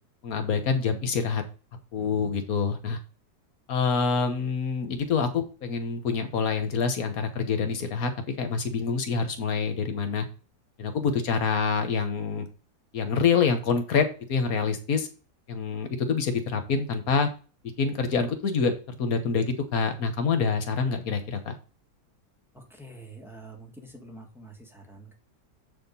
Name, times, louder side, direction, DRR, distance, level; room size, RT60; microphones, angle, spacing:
voice 1, 0.2-1.4 1.9-3.0 3.7-8.1 8.4-10.3 10.8-12.5 12.9-15.1 15.5-17.3 17.8-21.6, left 5 dB, 55° left, 7 dB, 1.4 m, -26 dB
voice 2, 22.5-25.2, right 2 dB, ahead, 1 dB, 1.3 m, -46 dB
7.8 x 4.4 x 5.3 m, 0.35 s
omnidirectional pair, 2.1 m